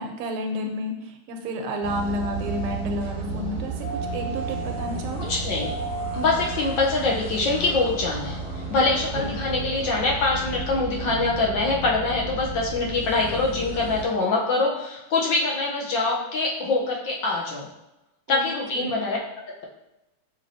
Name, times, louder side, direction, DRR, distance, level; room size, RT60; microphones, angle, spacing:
voice 1, 0.0-5.3 8.8-9.3 18.3-18.4 18.7-18.9, equal, 85° right, 4 dB, 1.5 m, -31 dB
sound 1, 1.8-2.9 3.8-4.9 5.6-6.8 7.4-7.5, right 2 dB, 90° left, 1.7 m, -35 dB
sound 2, 1.8-14.0, right 3 dB, 45° right, 0.9 m, -33 dB
voice 2, 5.2-5.8 6.1-8.4 8.7-17.7 18.3-19.2, left 3 dB, 70° left, -2 dB, 1.3 m, -24 dB
6.1 x 2.9 x 2.6 m, 0.91 s
omnidirectional pair, 2.4 m